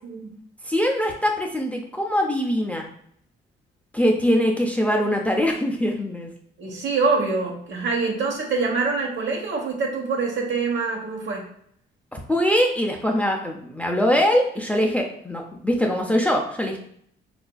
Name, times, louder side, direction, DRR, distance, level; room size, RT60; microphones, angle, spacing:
voice 1, 0.0-0.4 6.6-11.4, right 4 dB, 65° right, -1 dB, 1.0 m, -25 dB
voice 2, 0.6-2.9 3.9-6.3 12.1-16.8, equal, 5° left, 1 dB, 0.4 m, -22 dB
3.9 x 2.5 x 2.2 m, 0.66 s
cardioid pair, 90°, 20 cm